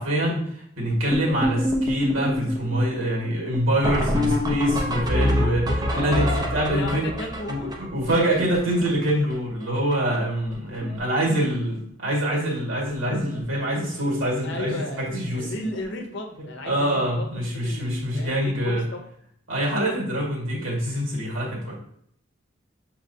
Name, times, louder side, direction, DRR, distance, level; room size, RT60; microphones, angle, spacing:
voice 1, 0.0-6.2 6.5-7.0 7.5-15.5 16.7-18.8 19.5-21.7, equal, 70° right, -3 dB, 1.7 m, -25 dB
sound 1, 1.1-9.3 9.6-9.7 9.9-10.2 10.4-11.0 11.3-11.5 12.3-12.4 12.9-13.0 13.2-13.4 15.7-15.8 18.1-18.2, equal, 20° right, 0.5 m, -26 dB
voice 2, 5.9-7.7 14.4-15.0 15.3-19.0, left 2 dB, 55° left, 4 dB, 0.7 m, -34 dB
6.5 x 2.9 x 2.6 m, 0.68 s
head